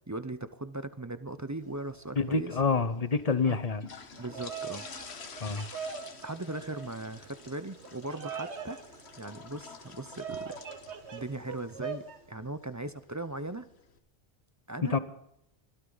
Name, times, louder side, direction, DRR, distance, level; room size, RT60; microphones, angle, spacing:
voice 1, 0.1-2.6 3.4-3.6 4.2-4.9 6.2-8.8 9.2-10.6 11.1-13.7 14.7-15.0, right 2 dB, 20° right, 12 dB, 0.5 m, -38 dB
sound 1, 1.6-14.0, left 5 dB, 75° left, 1.6 m, -50 dB
voice 2, 2.2-3.8 5.4-5.7 14.9-15.0, left 4 dB, 40° left, 12 dB, 1.0 m, -27 dB
Bird vocalization bird call bird song, 4.1-12.2, right 6 dB, 90° right, 1.5 m, -42 dB
24.5 x 13.0 x 4.0 m, 0.78 s
omnidirectional pair, 1.1 m